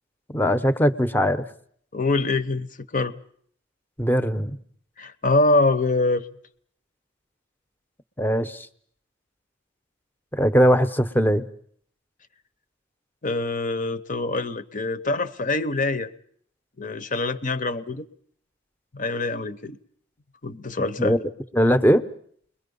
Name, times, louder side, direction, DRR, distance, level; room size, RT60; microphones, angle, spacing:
voice 1, 0.3-1.4 4.0-4.6 8.2-8.7 10.3-11.5 21.0-22.0, equal, 10° left, 11 dB, 0.9 m, -20 dB
voice 2, 1.9-3.2 5.0-6.3 13.2-16.1 16.8-18.1 18.9-19.8 20.4-21.1, left 2 dB, 40° left, 12 dB, 0.9 m, -24 dB
30.0 x 22.0 x 5.4 m, 0.62 s
head